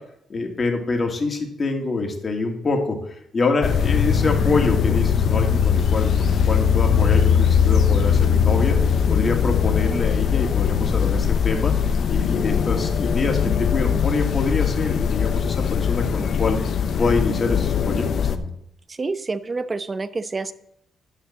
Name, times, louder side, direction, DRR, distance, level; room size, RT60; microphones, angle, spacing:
voice 1, 0.3-3.0 3.3-8.8 9.1-16.6 17.0-18.5, left 3 dB, 35° left, 2 dB, 2.3 m, -25 dB
sound 1, 3.6-18.4, left 7 dB, 60° left, 0.8 m, -20 dB
voice 2, 18.9-20.5, right 3 dB, 30° right, 13 dB, 0.8 m, -28 dB
11.5 x 5.8 x 7.2 m, 0.74 s
cardioid pair, 90°, 0 cm